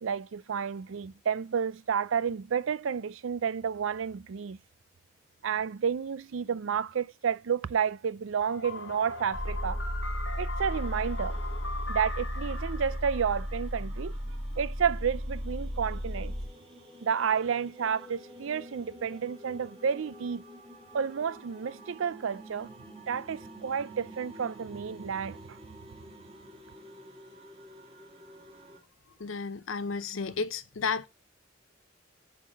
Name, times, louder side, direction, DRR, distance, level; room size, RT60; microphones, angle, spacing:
voice 1, 0.0-4.6 5.4-9.8 10.4-11.4 11.9-14.2 14.6-16.3 17.0-20.4 20.9-22.7 23.1-25.6, right 7 dB, 75° right, 0.4 m, -31 dB
Tlaloc's Sky Synth Loop, 8.4-14.3, left 3 dB, 60° left, 1.2 m, -41 dB
sound 1, 9.3-16.5, equal, 40° right, 2.7 m, -34 dB
sound 2, 10.6-28.8, equal, 25° right, 2.3 m, -50 dB
voice 2, 29.2-31.1, left 5 dB, 75° left, 0.7 m, -32 dB
8.6 x 3.9 x 6.3 m
head